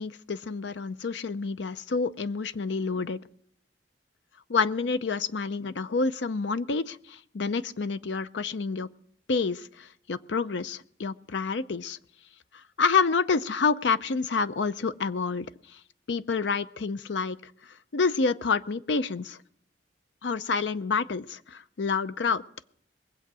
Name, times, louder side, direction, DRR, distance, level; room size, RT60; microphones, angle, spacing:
voice 1, 0.0-3.2 4.5-8.9 9.3-12.0 12.8-15.8 16.1-17.5 17.9-19.4 20.2-22.4, left 4 dB, 75° left, 13 dB, 0.6 m, -28 dB
22.0 x 7.9 x 6.1 m, 0.66 s
head